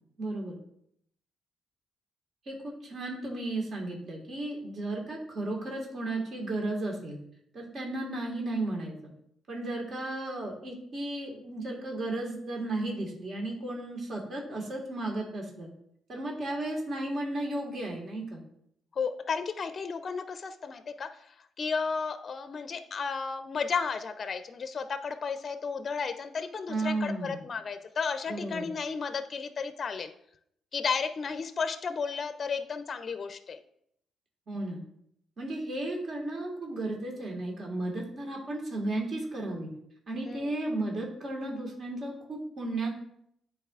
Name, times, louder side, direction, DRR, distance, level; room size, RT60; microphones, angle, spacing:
voice 1, 0.2-0.6 2.4-7.2 7.5-9.0 9.5-15.7 16.1-18.4 26.7-27.4 28.3-28.7 34.5-34.8 35.4-39.7 40.1-42.9, right 2 dB, 50° right, -1 dB, 1.6 m, -34 dB
voice 2, 19.0-30.1 30.7-33.6 40.2-40.5, left 5 dB, 45° left, 10 dB, 0.4 m, -33 dB
9.9 x 4.2 x 2.4 m, 0.71 s
cardioid pair, 90°, 0 cm